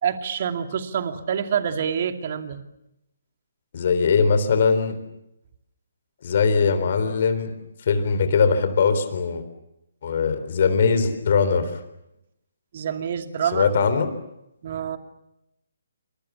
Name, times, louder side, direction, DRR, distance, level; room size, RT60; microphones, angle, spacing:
voice 1, 0.0-2.6 12.7-13.7 14.6-15.0, right 8 dB, 45° right, 7 dB, 2.5 m, -26 dB
voice 2, 3.7-5.0 6.2-7.5 7.9-9.4 10.0-11.7 13.5-14.1, left 5 dB, 45° left, 10 dB, 3.9 m, -20 dB
29.0 x 26.0 x 7.2 m, 0.85 s
figure-of-eight pair, 140°, 0 cm